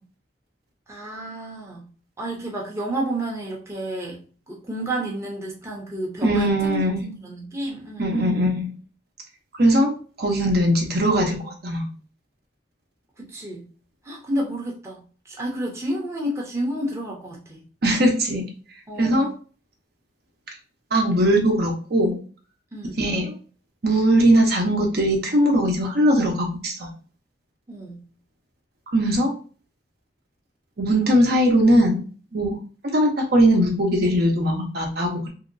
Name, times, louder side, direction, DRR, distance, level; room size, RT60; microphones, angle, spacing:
voice 1, 0.9-1.9 2.2-8.3 13.2-13.7 14.0-17.6 18.9-19.3 22.7-23.1 27.7-28.0, right 1 dB, 15° right, -3 dB, 0.7 m, -31 dB
voice 2, 6.2-7.0 8.0-8.7 9.5-9.9 10.2-11.9 17.8-18.4 19.0-19.3 20.9-22.2 23.0-23.3 23.8-26.9 28.9-29.3 30.8-32.0 32.3-32.5 32.9-35.3, right 1 dB, 55° right, 1 dB, 0.7 m, -20 dB
3.0 x 2.8 x 2.6 m, 0.38 s
head